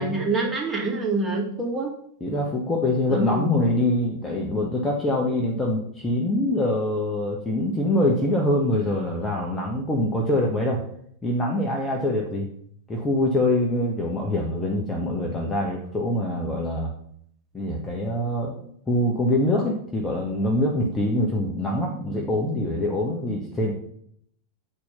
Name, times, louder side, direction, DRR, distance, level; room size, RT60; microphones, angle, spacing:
voice 1, 0.0-1.9 3.1-3.6, right 2 dB, 10° right, -3 dB, 2.4 m, -26 dB
voice 2, 2.2-10.8 11.2-12.5 12.9-16.9 17.5-18.5 18.9-23.7, left 1 dB, 10° left, -1 dB, 1.2 m, -24 dB
8.1 x 4.4 x 5.6 m, 0.66 s
figure-of-eight pair, 90°, 0 cm